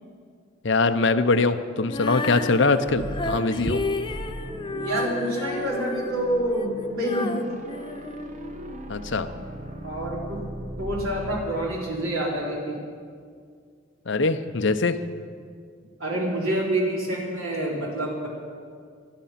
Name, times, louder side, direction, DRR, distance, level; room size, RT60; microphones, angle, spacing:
voice 1, 0.6-3.9 8.9-9.3 14.1-15.0, left 3 dB, 60° left, 8 dB, 0.7 m, -22 dB
Female singing, 1.8-8.9, left 2 dB, 25° left, 0.6 m, -32 dB
sound 1, 2.8-12.5, equal, 35° right, 1.2 m, -38 dB
voice 2, 4.7-7.5 9.8-10.4 10.8-12.8 16.0-18.3, right 1 dB, 80° right, -3 dB, 4.1 m, -27 dB
19.5 x 12.0 x 5.8 m, 2.1 s
head